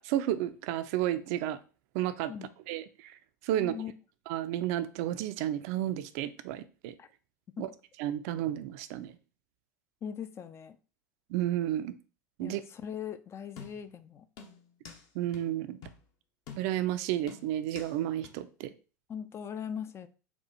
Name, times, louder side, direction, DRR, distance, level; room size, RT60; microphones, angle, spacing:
voice 1, 0.0-1.6 1.9-2.3 2.7-3.2 3.4-3.7 4.3-6.9 7.6-7.7 8.0-9.1 11.3-11.9 12.4-12.6 15.1-15.8 16.6-18.7, right 12 dB, 55° right, 0.4 m, -32 dB
voice 2, 3.5-3.9 7.0-7.1 7.6-7.7 10.0-10.8 12.4-14.3 19.1-20.1, left 8 dB, 25° left, 0.4 m, -40 dB
sound 1, 13.6-14.0 14.4-15.0 15.3-15.4 15.8-16.0 16.5-16.9 17.3-17.9 18.2-18.3, left 6 dB, 45° left, 0.9 m, -48 dB
4.4 x 2.4 x 4.1 m
figure-of-eight pair, 80°, 10 cm